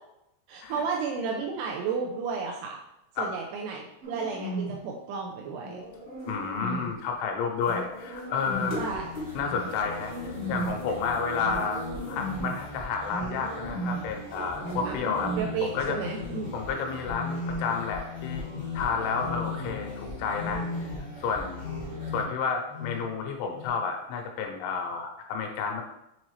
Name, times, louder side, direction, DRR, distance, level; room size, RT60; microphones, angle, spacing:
voice 1, 0.5-2.8 3.2-5.8 8.8-9.1 14.8-14.9 15.4-16.5, right 5 dB, 80° right, 0 dB, 2.4 m, -32 dB
sound 1, 4.0-4.9 5.6-7.0 7.6-8.9 9.5-10.8 11.3-12.6 13.0-14.1 14.6-15.6 16.0-16.6 17.0-17.9 18.3-18.7 19.1-19.9 20.3-21.1 21.6-22.4 22.7-23.2 23.5-23.7, equal, 65° right, 1.4 m, -36 dB
sound 2, 5.8-15.4, left 1 dB, 45° left, 0.8 m, -45 dB
voice 2, 6.3-8.8 9.3-15.3 15.6-16.0 16.5-18.4 18.7-20.7 21.2-21.6 22.1-25.8, left 5 dB, 85° left, 3 dB, 3.3 m, -31 dB
sound 3, 8.5-22.2, left 1 dB, 70° left, 0.5 m, -40 dB
7.3 x 4.0 x 3.2 m, 0.85 s
omnidirectional pair, 5.3 m